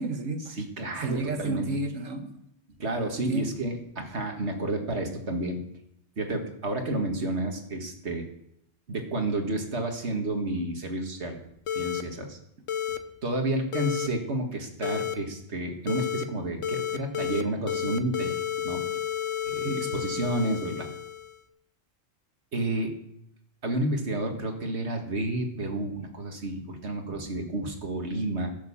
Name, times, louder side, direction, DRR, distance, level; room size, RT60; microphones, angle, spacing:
voice 1, 0.0-0.6 1.0-2.3 3.3-3.5 19.6-19.9, right 2 dB, 85° right, 7 dB, 1.7 m, -31 dB
voice 2, 0.6-1.7 2.8-5.6 6.2-8.2 8.9-11.4 11.7-12.4 13.2-19.0 19.5-20.9 22.5-23.0 23.6-28.5, right 1 dB, 60° right, 3 dB, 2.1 m, -30 dB
sound 1, 11.7-12.0 12.7-13.0 13.7-14.1 14.8-15.1 15.9-16.2 16.6-17.4 17.7-21.4, left 9 dB, 80° left, 1.2 m, -31 dB
15.5 x 7.5 x 7.1 m, 0.78 s
omnidirectional pair, 1.3 m